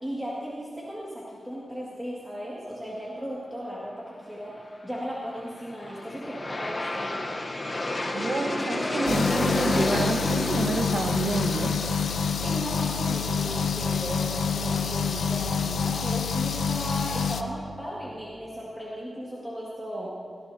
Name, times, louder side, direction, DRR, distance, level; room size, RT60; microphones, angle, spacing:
voice 1, 0.0-4.5 4.8-7.3 12.4-20.1, equal, 10° right, -7 dB, 2.1 m, -36 dB
Aircraft, 5.4-16.4, left 2 dB, 30° left, 1.0 m, -33 dB
voice 2, 8.1-11.7, right 3 dB, 65° right, 5 dB, 1.2 m, -28 dB
sound 1, 9.1-17.4, left 6 dB, 80° left, 0.6 m, -27 dB
19.0 x 14.5 x 2.8 m, 2.2 s
wide cardioid pair, 115°, 0 cm